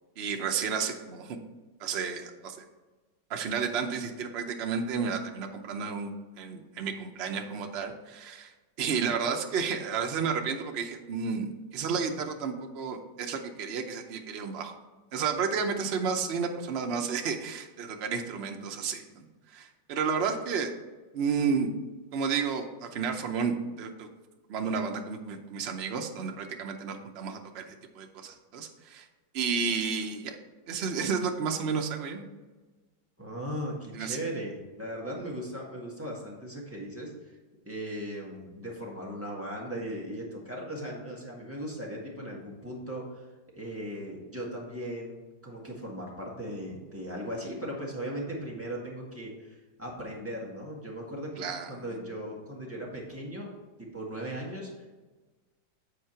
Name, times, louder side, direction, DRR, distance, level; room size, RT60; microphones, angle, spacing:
voice 1, 0.2-1.4 1.8-2.6 3.3-8.5 8.8-14.7 15.1-20.7 21.1-21.7 22.1-24.1 24.5-29.1 29.3-30.4 30.7-32.2 33.9-34.2 51.4-51.7, right 6 dB, 90° right, 4 dB, 0.5 m, -32 dB
voice 2, 33.2-37.4 37.6-43.3 43.5-53.5 53.8-54.9, equal, 10° right, -4 dB, 1.3 m, -38 dB
8.3 x 4.6 x 4.4 m, 1.2 s
omnidirectional pair, 2.1 m